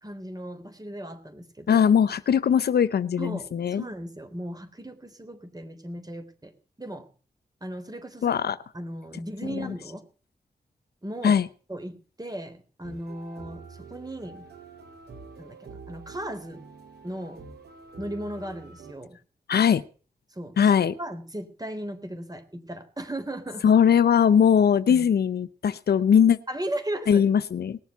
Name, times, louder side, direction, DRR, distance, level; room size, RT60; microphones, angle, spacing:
voice 1, 0.0-1.8 3.2-6.5 6.8-7.1 7.6-8.4 8.7-10.1 11.0-11.4 11.7-13.6 13.9-14.5 15.4-16.6 17.0-17.4 18.0-19.2 20.3-23.7 24.9-25.1 26.5-27.2, right 1 dB, 25° right, 10 dB, 3.5 m, -36 dB
voice 2, 1.7-3.8 8.2-8.6 9.5-9.7 11.2-11.5 19.5-19.8 20.6-20.9 23.6-26.4 27.1-27.8, left 8 dB, 75° left, 14 dB, 0.7 m, -20 dB
sound 1, 12.8-18.9, right 4 dB, 85° right, 3.0 m, -46 dB
19.5 x 7.3 x 8.1 m, 0.40 s
cardioid pair, 45°, 16 cm